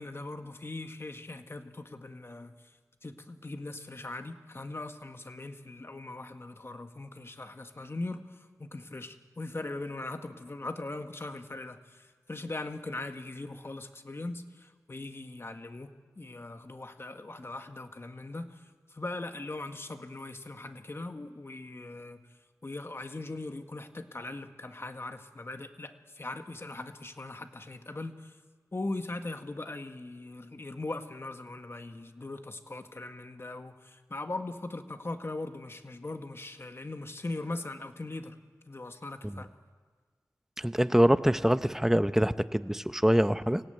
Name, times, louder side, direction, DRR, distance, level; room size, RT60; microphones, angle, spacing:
voice 1, 0.0-2.5 3.0-22.3 22.6-28.4 28.7-38.4 38.7-39.5, left 2 dB, 40° left, 7 dB, 1.6 m, -40 dB
voice 2, 40.6-43.6, equal, 5° right, 12 dB, 0.8 m, -24 dB
25.0 x 17.5 x 9.2 m, 1.5 s
wide cardioid pair, 70°, 6 cm